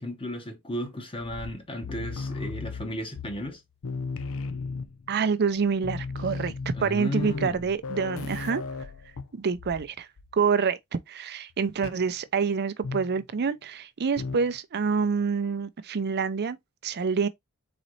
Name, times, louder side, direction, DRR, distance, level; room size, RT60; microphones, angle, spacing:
voice 1, 0.0-3.6 6.7-7.7, left 1 dB, 25° left, 1.0 m, -34 dB
sound 1, 1.2-3.6 3.8-5.1 5.5-5.6 5.8-9.9 10.2-10.5 11.8-12.1 12.8-13.2 14.2-14.6, left 4 dB, 65° left, 0.6 m, -36 dB
voice 2, 5.1-6.5 6.8-8.6 9.3-10.1 10.3-16.6 16.8-17.3, right 5 dB, 50° right, 0.5 m, -27 dB
4.1 x 3.9 x 3.1 m
head